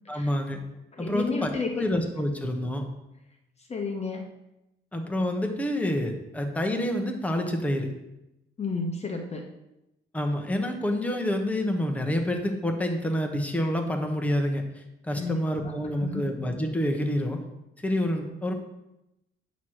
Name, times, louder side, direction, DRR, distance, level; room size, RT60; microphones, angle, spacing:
voice 1, 0.1-0.6 1.0-1.5 1.8-2.8 4.9-7.9 10.1-17.4 17.8-18.5, left 1 dB, 5° left, 3 dB, 1.0 m, -28 dB
voice 2, 0.9-1.8 3.7-4.2 8.6-9.5 15.1-16.3, left 4 dB, 30° left, 3 dB, 0.9 m, -32 dB
9.0 x 3.0 x 6.3 m, 0.90 s
cardioid pair, 90°, 20 cm